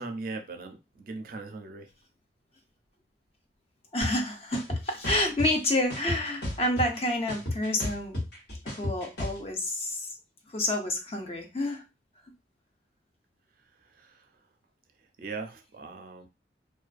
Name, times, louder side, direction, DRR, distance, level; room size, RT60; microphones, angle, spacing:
voice 1, 0.0-1.9 13.8-14.3 15.2-16.3, right 3 dB, 45° right, 0.4 m, -39 dB
voice 2, 3.9-8.2 8.6-10.1 10.5-11.8, left 1 dB, 30° left, 0.4 m, -29 dB
sound 1, 4.0-4.1 4.5-5.5 5.9-7.0 7.3-9.4, left 1 dB, 55° left, 1.1 m, -32 dB
2.4 x 2.3 x 2.4 m
head